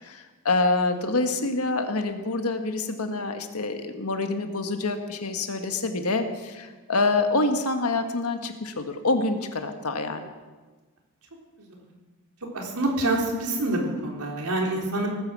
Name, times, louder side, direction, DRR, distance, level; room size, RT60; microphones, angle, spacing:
voice 1, 0.0-10.3, left 3 dB, 85° left, 6 dB, 1.7 m, -26 dB
voice 2, 12.5-15.1, right 2 dB, 90° right, 0 dB, 3.8 m, -26 dB
19.0 x 9.7 x 7.5 m, 1.3 s
head